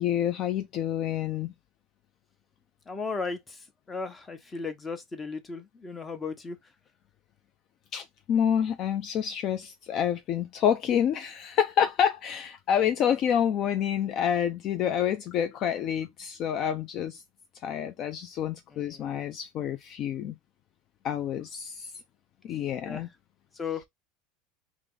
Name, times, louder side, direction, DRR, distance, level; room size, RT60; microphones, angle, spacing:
voice 1, 0.0-1.5 7.9-17.2 17.6-20.3 21.0-21.9 22.4-23.1, left 9 dB, 50° left, 0.5 m, -28 dB
voice 2, 2.9-3.6 3.9-6.6 18.7-19.2 22.8-23.0 23.5-23.8, left 4 dB, 20° left, 1.1 m, -36 dB
3.3 x 3.1 x 3.9 m
supercardioid pair, 100°, 0 cm